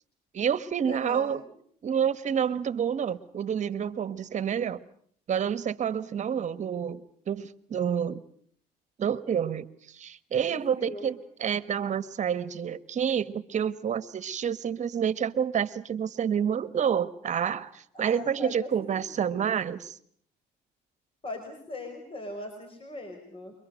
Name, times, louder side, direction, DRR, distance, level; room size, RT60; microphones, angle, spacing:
voice 1, 0.3-1.4 1.8-4.8 5.3-8.2 9.0-20.0, right 8 dB, 45° right, 1.5 m, -29 dB
voice 2, 0.9-1.4 10.5-11.1 17.9-18.7 19.1-19.3 21.2-23.5, left 2 dB, 30° left, 5.5 m, -40 dB
29.5 x 23.5 x 6.5 m
cardioid pair, 110°, 17 cm